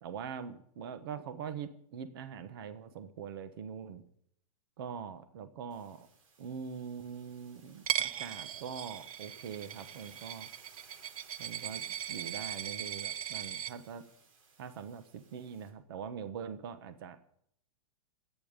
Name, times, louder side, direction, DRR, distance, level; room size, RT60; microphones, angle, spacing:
voice 1, 0.0-4.0 4.8-6.1 6.4-7.8 8.2-10.5 11.4-14.0 14.6-17.2, right 7 dB, 45° right, 11 dB, 1.1 m, -43 dB
sound 1, 5.7-15.7, right 4 dB, 65° right, 5.6 m, -60 dB
Coin (dropping), 7.9-13.7, right 10 dB, 85° right, 1.0 m, -38 dB
26.5 x 9.4 x 5.2 m, 0.68 s
supercardioid pair, 180°, 18 cm